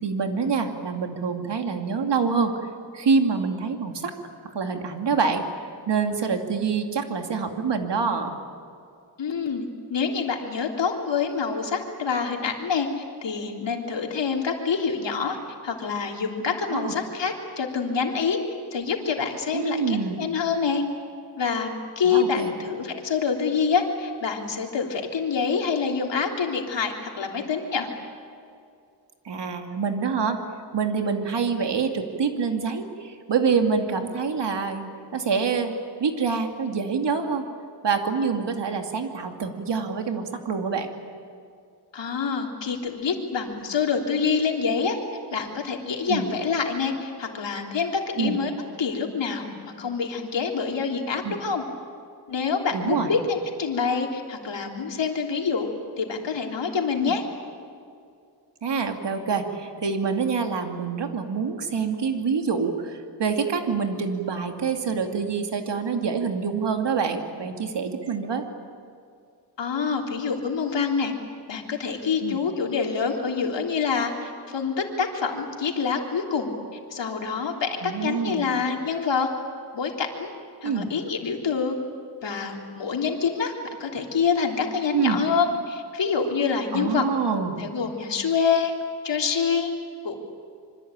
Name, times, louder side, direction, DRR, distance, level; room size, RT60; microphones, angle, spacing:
voice 1, 0.0-2.5 2.9-4.1 4.4-5.4 5.9-8.3 16.7-16.9 19.5-20.3 22.0-22.5 29.2-30.4 30.7-35.7 36.0-37.5 37.8-40.9 46.1-46.3 48.2-48.4 51.2-51.4 52.7-53.1 57.0-57.1 58.6-68.5 72.2-72.4 77.8-78.5 80.6-80.9 84.9-85.2 86.7-87.6, right 5 dB, 75° right, 5 dB, 2.6 m, -26 dB
voice 2, 9.2-9.6 9.9-15.4 15.6-18.4 18.7-20.8 21.4-21.7 21.9-27.9 41.9-45.0 45.3-48.5 48.8-51.6 52.3-55.7 56.0-57.2 69.6-71.1 71.5-79.3 79.7-80.3 80.6-81.8 82.2-83.5 83.8-87.0 87.6-88.7 89.0-89.7 90.0-90.2, left 5 dB, 85° left, 1 dB, 3.4 m, -26 dB
26.5 x 24.5 x 8.9 m, 2.4 s
wide cardioid pair, 120°, 42 cm